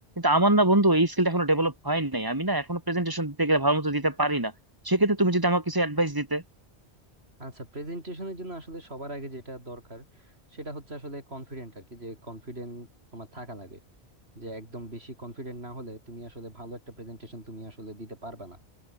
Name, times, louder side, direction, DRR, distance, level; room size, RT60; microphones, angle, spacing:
voice 1, 0.2-4.5 4.8-6.4, right 1 dB, 20° right, 2.2 m, -24 dB
voice 2, 7.4-13.8 14.4-18.6, right 1 dB, 70° right, 7.2 m, -40 dB
omnidirectional pair, 1.1 m